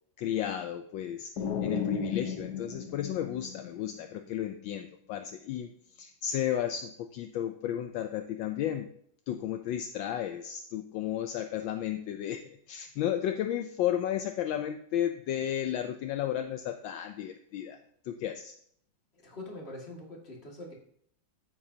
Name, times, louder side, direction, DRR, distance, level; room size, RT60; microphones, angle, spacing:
voice 1, 0.2-1.3 1.6-8.9 9.3-12.4 12.7-17.8 18.0-18.5, left 11 dB, 75° left, 7 dB, 1.3 m, -33 dB
sound 1, 1.4-4.2, left 6 dB, 60° left, 1.3 m, -34 dB
voice 2, 19.1-20.7, left 1 dB, 30° left, -1 dB, 2.2 m, -44 dB
14.5 x 8.6 x 2.8 m, 0.67 s
omnidirectional pair, 2.2 m